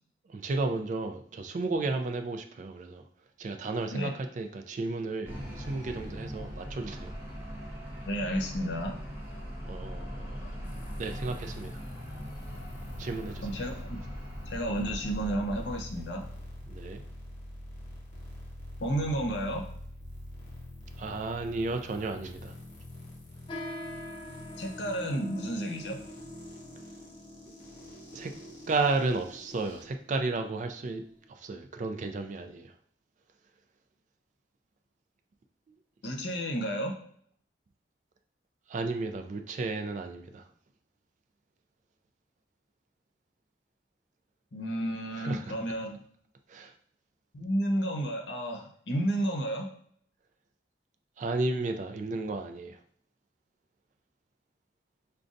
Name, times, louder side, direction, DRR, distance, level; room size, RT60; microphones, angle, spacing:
voice 1, 0.3-3.0 3.4-7.1 9.6-10.4 11.0-11.7 13.0-13.5 16.7-17.0 21.0-22.5 28.1-28.3 28.7-31.0 31.4-32.7 38.7-40.4 45.2-45.4 46.5-46.7 51.2-52.8, right 3 dB, 45° right, 0.3 m, -33 dB
sound 1, 5.2-15.8, equal, 15° right, 0.9 m, -40 dB
voice 2, 8.0-8.9 13.4-14.0 14.5-16.3 18.8-19.6 24.6-26.0 36.0-37.0 44.5-46.0 47.3-49.7, right 1 dB, 75° left, 0.7 m, -31 dB
sound 2, 10.6-29.8, left 1 dB, 45° left, 1.0 m, -46 dB
sound 3, 23.5-31.3, left 1 dB, 30° left, 0.4 m, -45 dB
5.0 x 2.3 x 2.5 m
head